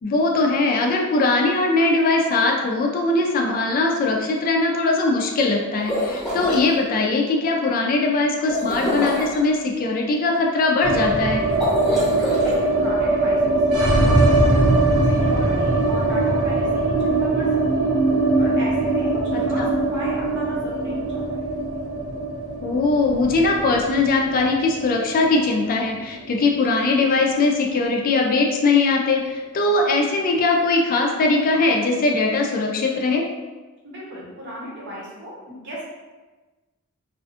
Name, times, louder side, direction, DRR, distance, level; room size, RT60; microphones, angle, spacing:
voice 1, 0.0-11.5 19.3-19.7 22.6-33.2, left 3 dB, 40° left, 1 dB, 0.3 m, -20 dB
sound 1, 5.7-6.6 8.5-9.4 11.5-12.6, left 1 dB, ahead, 0.8 m, -25 dB
sound 2, 10.8-26.9 27.2-27.3 27.6-28.3, right 2 dB, 75° right, 0.4 m, -21 dB
voice 2, 12.2-14.6 15.0-17.9 18.4-21.5 33.8-35.9, equal, 55° right, -5 dB, 0.8 m, -36 dB
2.4 x 2.3 x 2.4 m, 1.2 s
head